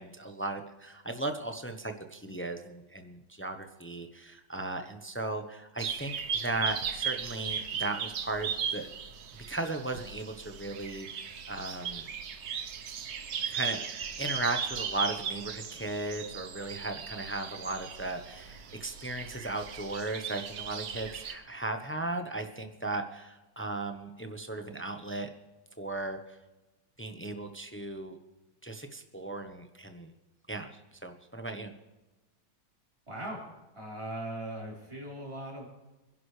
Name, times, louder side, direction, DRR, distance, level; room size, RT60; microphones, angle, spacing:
voice 1, 0.0-8.9 9.5-12.1 13.5-13.9 14.2-25.3 25.8-26.4 27.0-28.2 28.6-30.1 30.5-30.7 31.0-31.7, right 2 dB, 10° left, 6 dB, 0.5 m, -36 dB
sound 1, 5.8-21.3, right 7 dB, 55° right, 1.4 m, -37 dB
voice 2, 33.1-33.4 33.7-35.7, right 1 dB, 15° right, -5 dB, 4.7 m, -39 dB
25.5 x 11.0 x 3.3 m, 1.1 s
omnidirectional pair, 2.1 m